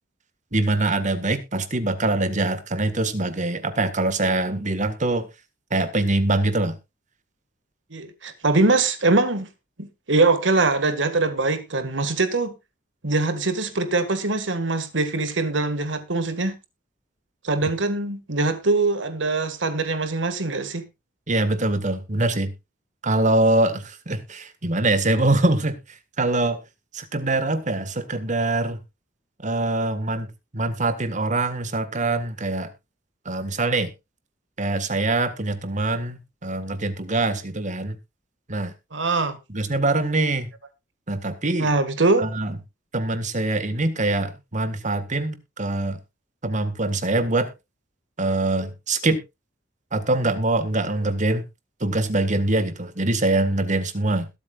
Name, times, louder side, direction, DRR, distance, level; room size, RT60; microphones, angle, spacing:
voice 1, 0.5-5.3 5.7-6.8 21.3-22.5 23.0-25.8 26.2-26.6 26.9-28.8 29.4-30.3 30.5-32.7 33.3-33.9 34.6-38.0 38.5-38.7 39.5-40.5 41.1-41.7 42.2-42.5 42.9-46.0 46.4-47.5 48.2-49.2 49.9-51.4 51.8-54.3, right 2 dB, 40° right, 1.7 m, -23 dB
voice 2, 7.9-9.5 9.8-12.6 13.0-16.6 17.4-20.9 38.9-39.4 41.6-42.2, right 3 dB, 75° right, 1.8 m, -22 dB
21.0 x 8.3 x 2.4 m
head